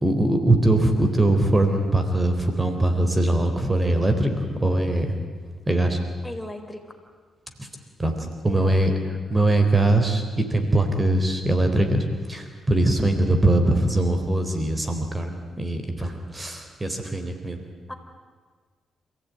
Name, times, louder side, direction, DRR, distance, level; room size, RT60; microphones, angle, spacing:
voice 1, 0.0-5.2 5.7-6.0 7.6-7.7 8.0-8.9 9.3-17.6, right 1 dB, 25° right, 6 dB, 3.8 m, -22 dB
voice 2, 6.2-6.8 8.5-8.8 9.1-9.2 17.9-18.0, left 1 dB, 10° left, 5 dB, 4.3 m, -37 dB
27.5 x 16.5 x 9.6 m, 1.5 s
supercardioid pair, 50°, 0 cm